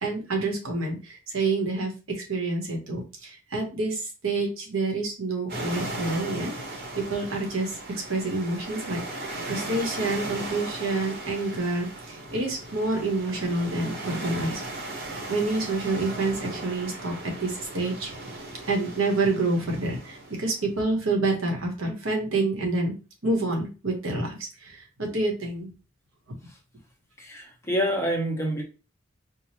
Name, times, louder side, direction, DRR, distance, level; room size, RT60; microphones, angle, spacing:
voice 1, 0.0-6.5 6.9-7.7 8.1-9.0 9.5-11.9 12.3-14.6 15.3-17.1 17.4-18.1 18.7-22.9 23.2-24.4 25.0-25.7, right 2 dB, 85° right, 1.2 m, -27 dB
sound 1, 5.5-20.6, right 2 dB, 50° right, 1.1 m, -37 dB
voice 2, 27.2-28.6, equal, 15° left, 0.9 m, -27 dB
4.7 x 2.3 x 2.9 m
head